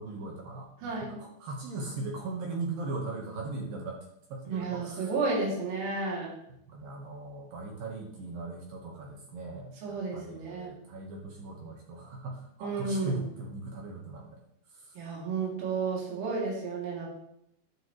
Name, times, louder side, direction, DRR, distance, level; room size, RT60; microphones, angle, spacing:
voice 1, 0.0-4.0 4.3-5.1 6.7-14.4, right 3 dB, 65° right, -1 dB, 2.4 m, -39 dB
voice 2, 0.8-1.2 4.5-6.3 9.8-10.7 12.6-13.2 15.0-17.1, right 4 dB, 90° right, -3 dB, 5.3 m, -32 dB
12.0 x 8.9 x 3.1 m, 0.77 s
omnidirectional pair, 5.6 m